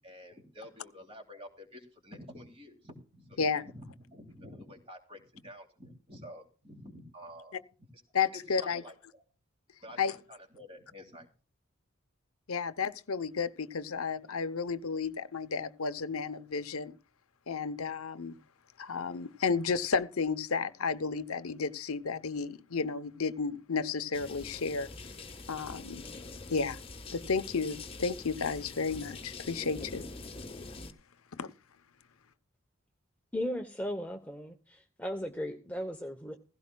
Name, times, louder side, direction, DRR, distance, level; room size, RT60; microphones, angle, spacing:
voice 1, 0.0-7.9 8.3-9.2 9.8-11.3, equal, 25° right, 2.9 m, -50 dB
voice 2, 8.1-8.8 10.0-10.1 12.5-16.9 17.5-18.4 18.8-24.9 25.5-26.0 26.5-26.8 27.1-30.0 31.4-31.5, left 5 dB, 85° left, 0.8 m, -32 dB
sound 1, 24.1-30.9, left 3 dB, 25° left, 1.3 m, -44 dB
voice 3, 33.3-36.4, equal, 5° left, 0.8 m, -36 dB
17.0 x 16.0 x 2.3 m
head